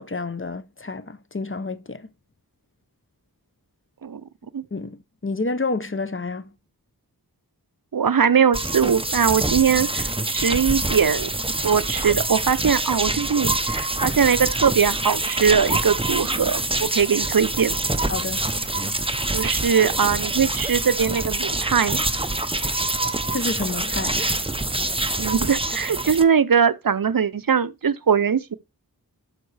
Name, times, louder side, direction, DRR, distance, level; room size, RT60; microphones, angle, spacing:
voice 1, 0.0-2.1 4.7-6.5 18.1-18.5 23.3-24.4, left 3 dB, 35° left, 0.7 m, -29 dB
voice 2, 7.9-11.3 11.6-17.8 19.3-22.1 25.2-28.5, right 7 dB, 65° right, 0.6 m, -21 dB
sound 1, 8.5-26.2, right 2 dB, 15° right, 0.7 m, -25 dB
12.5 x 5.3 x 3.3 m
wide cardioid pair, 45°, 37 cm